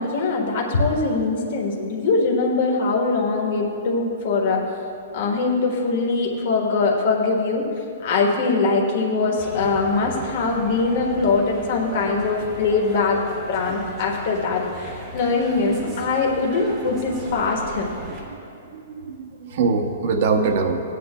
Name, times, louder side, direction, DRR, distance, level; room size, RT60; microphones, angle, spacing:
voice 1, 0.0-4.6 5.1-7.6 8.0-13.2 13.5-14.6 15.1-17.9, left 3 dB, 45° left, -1 dB, 1.5 m, -22 dB
sound 1, 9.4-18.2, right 1 dB, 15° right, 1.1 m, -37 dB
voice 2, 18.2-20.8, right 4 dB, 40° right, 5 dB, 0.7 m, -24 dB
16.0 x 9.5 x 2.2 m, 2.5 s
hypercardioid pair, 180°, 0 cm